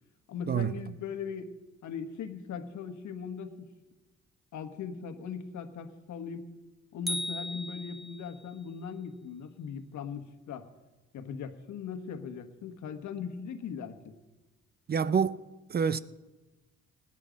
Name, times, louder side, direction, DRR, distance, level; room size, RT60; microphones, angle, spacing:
voice 1, 0.3-1.5 1.8-3.7 4.5-6.5 6.9-10.7 11.1-14.2, left 6 dB, 70° left, 1.4 m, -39 dB
sound 1, 7.1-8.5, left 1 dB, ahead, 0.7 m, -36 dB
voice 2, 14.9-15.4 15.7-16.0, right 6 dB, 35° right, 0.5 m, -27 dB
18.5 x 9.9 x 5.1 m
cardioid pair, 90°, 30 cm